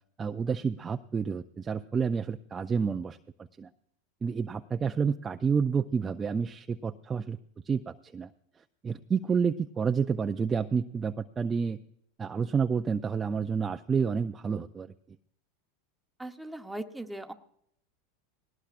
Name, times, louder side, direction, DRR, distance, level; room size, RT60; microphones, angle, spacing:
voice 1, 0.2-3.2 3.6-3.7 4.2-7.4 7.7-8.3 8.8-11.8 12.2-14.9, right 6 dB, 20° right, 7 dB, 0.4 m, -29 dB
voice 2, 16.2-17.3, right 1 dB, 5° right, 5 dB, 1.0 m, -39 dB
19.5 x 18.0 x 2.5 m, 0.71 s
supercardioid pair, 125°, 0 cm